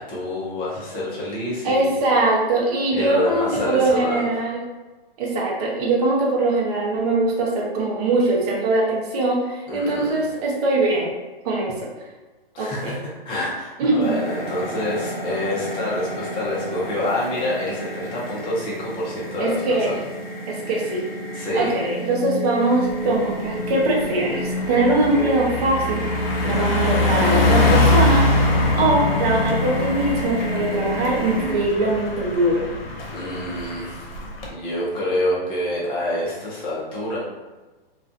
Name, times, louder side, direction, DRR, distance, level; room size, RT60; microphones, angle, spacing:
voice 1, 0.0-2.0 2.9-4.3 9.7-10.2 12.5-13.0 13.2-20.0 21.3-21.8 33.1-34.1 34.5-37.2, left 1 dB, 15° left, -6 dB, 0.6 m, -27 dB
voice 2, 1.6-4.6 5.2-11.1 11.4-11.9 12.6-13.0 13.8-14.2 19.4-20.0 20.5-21.0 21.5-26.1 26.4-28.3 28.8-32.7, right 2 dB, 40° right, -2 dB, 0.6 m, -22 dB
sound 1, 14.0-31.5, left 1 dB, 50° left, 1.0 m, -30 dB
Car passing by, 22.9-23.1 23.5-34.5, left 2 dB, 65° left, 0.8 m, -23 dB
2.3 x 2.3 x 2.5 m, 1.2 s
hypercardioid pair, 140°, 31 cm